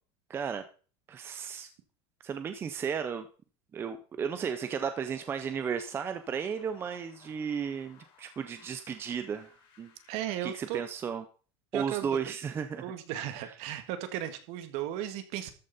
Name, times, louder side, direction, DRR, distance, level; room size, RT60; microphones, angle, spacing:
voice 1, 0.3-0.6 1.1-1.7 2.2-3.3 3.7-9.5 9.8-9.9 10.4-11.2 11.7-12.8, right 7 dB, 15° right, 9 dB, 0.5 m, -34 dB
sound 1, 4.2-10.8, left 7 dB, 40° left, 3.9 m, -59 dB
voice 2, 10.1-10.8 11.7-12.2 12.8-15.5, right 12 dB, 50° right, 10 dB, 1.7 m, -35 dB
13.5 x 9.0 x 4.1 m, 0.39 s
cardioid pair, 170°, 14 cm